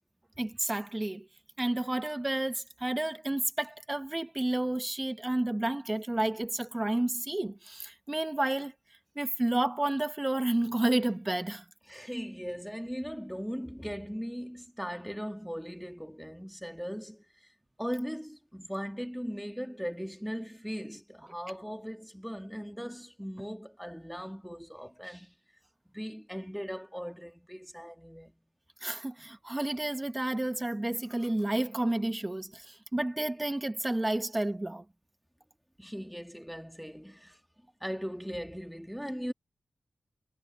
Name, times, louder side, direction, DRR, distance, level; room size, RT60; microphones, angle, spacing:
voice 1, 0.4-1.3 1.6-8.7 9.1-11.6 28.8-34.8, right 1 dB, 20° right, 1.6 m, -31 dB
voice 2, 11.9-17.5 17.8-25.3 25.9-28.4 35.8-37.4 37.8-39.3, equal, ahead, 3.0 m, -39 dB
wide cardioid pair, 85°, 0 cm